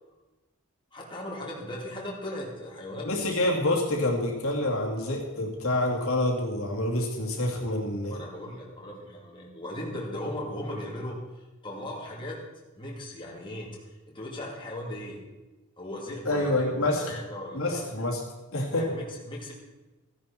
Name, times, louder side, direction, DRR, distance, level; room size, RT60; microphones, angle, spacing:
voice 1, 0.9-3.3 8.1-12.4 12.8-13.8 14.1-15.2 15.8-17.8 18.7-19.5, left 1 dB, 20° left, -3 dB, 2.4 m, -37 dB
voice 2, 3.0-8.2 16.2-17.1 17.5-18.2 18.5-18.8, left 1 dB, 65° left, -1 dB, 2.6 m, -27 dB
15.0 x 10.5 x 4.4 m, 1.1 s
head